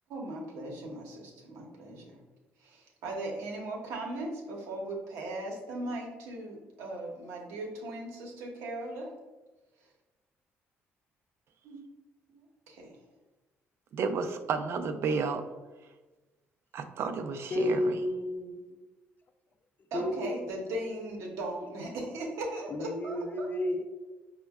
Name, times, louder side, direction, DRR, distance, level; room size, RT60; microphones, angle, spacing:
voice 1, 0.1-2.2 2.6-9.1 11.6-11.8 12.3-13.0 19.9-23.2, right 1 dB, 90° right, 0 dB, 0.8 m, -38 dB
voice 2, 13.9-15.4 16.7-17.8, right 5 dB, 60° right, 8 dB, 0.4 m, -31 dB
voice 3, 17.5-18.9 19.9-20.7 22.7-23.8, left 1 dB, 40° left, 5 dB, 0.4 m, -32 dB
5.2 x 2.1 x 2.3 m, 1.2 s
cardioid pair, 95°, 5 cm